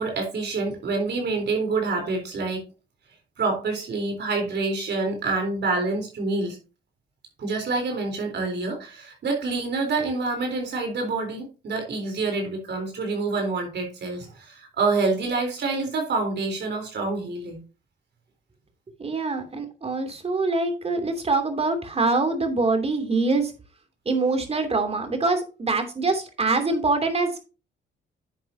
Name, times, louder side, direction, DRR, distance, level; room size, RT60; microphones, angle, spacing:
voice 1, 0.0-2.6 3.4-6.6 7.4-17.6, right 3 dB, 60° right, 2 dB, 3.8 m, -27 dB
voice 2, 19.0-23.5 24.1-27.4, right 3 dB, 30° right, 7 dB, 2.7 m, -24 dB
10.5 x 7.7 x 2.7 m, 0.32 s
cardioid pair, 90°, 20 cm